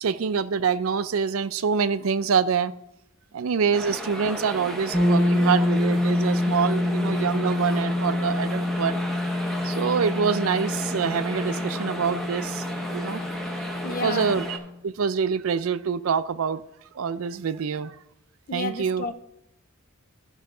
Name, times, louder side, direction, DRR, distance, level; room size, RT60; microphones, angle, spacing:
voice 1, 0.0-2.7 3.3-9.0 9.6-12.6 12.9-13.2 14.0-14.6 14.8-16.6 17.0-18.0 18.5-19.1, right 6 dB, 75° right, 0.4 m, -25 dB
sound 1, 3.7-14.6, equal, ahead, 1.0 m, -34 dB
sound 2, 4.9-14.7, left 1 dB, 65° left, 3.8 m, -26 dB
voice 2, 13.8-14.4 18.5-19.1, left 3 dB, 40° left, 0.6 m, -31 dB
14.0 x 5.6 x 3.8 m
head